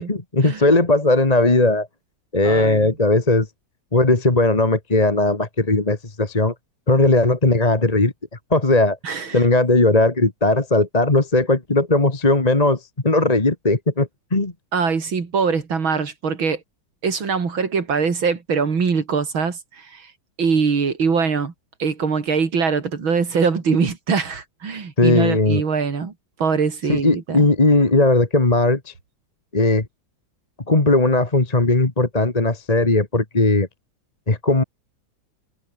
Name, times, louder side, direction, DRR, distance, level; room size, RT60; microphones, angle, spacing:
voice 1, 0.0-1.9 2.3-3.5 3.9-6.5 6.9-8.1 8.5-9.0 9.3-14.5 25.0-25.6 26.9-28.9 29.5-29.9 30.7-33.7 34.3-34.6, left 2 dB, 20° left, 2.0 m, -18 dB
voice 2, 2.4-2.9 9.0-9.4 14.7-16.6 17.0-20.1 20.4-21.5 21.8-26.1 26.4-27.4, right 5 dB, 80° right, 3.8 m, -22 dB
omnidirectional pair, 2.2 m